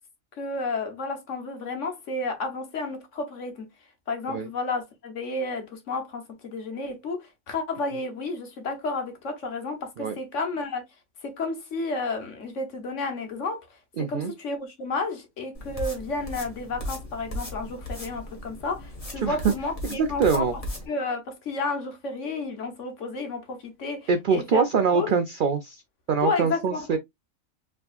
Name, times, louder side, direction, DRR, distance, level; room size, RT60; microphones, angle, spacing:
voice 1, 0.4-3.7 4.1-10.8 11.2-13.7 14.0-20.5 20.9-24.6 24.9-25.1 26.2-27.0, left 3 dB, 65° left, 1.5 m, -31 dB
voice 2, 14.0-14.3 19.2-19.5 19.9-20.5 24.1-25.8 26.1-27.0, right 5 dB, 75° right, 0.4 m, -24 dB
sound 1, 15.5-20.9, left 1 dB, 25° left, 1.5 m, -37 dB
4.6 x 3.6 x 2.4 m
omnidirectional pair, 1.4 m